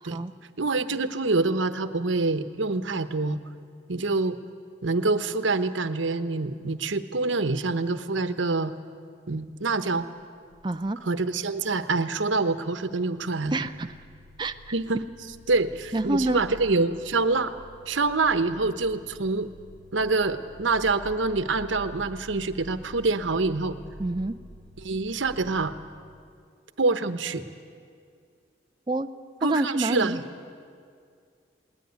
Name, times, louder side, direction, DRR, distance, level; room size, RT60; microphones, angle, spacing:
voice 1, 0.0-0.3 10.6-11.0 13.5-13.9 14.4-14.5 15.9-16.4 24.0-24.3 28.9-29.1 29.4-30.2, right 2 dB, 25° right, 8 dB, 0.5 m, -27 dB
voice 2, 0.6-3.4 3.9-4.4 4.8-8.7 9.3-10.1 11.0-13.5 14.7-15.0 15.5-17.5 17.9-19.5 19.9-23.8 24.8-25.7 26.8-27.4 29.4-30.2, right 3 dB, 90° right, 11 dB, 1.0 m, -26 dB
sound 1, 10.1-11.5 11.8-25.7, equal, 30° left, 4.8 m, -48 dB
20.5 x 18.5 x 9.4 m, 2.2 s
head